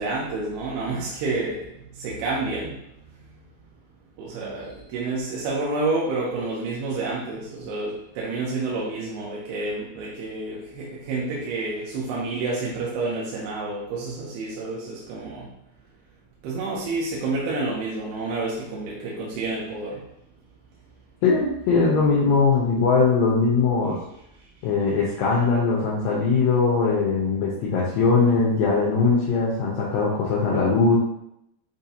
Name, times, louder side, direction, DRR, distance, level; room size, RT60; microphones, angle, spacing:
voice 1, 0.0-2.8 4.2-15.5 16.4-20.0, right 3 dB, 85° right, -5 dB, 2.8 m, -29 dB
voice 2, 21.2-24.0 24.6-31.0, left 4 dB, 75° left, -5 dB, 2.2 m, -20 dB
7.2 x 2.7 x 2.7 m, 0.79 s
omnidirectional pair, 4.5 m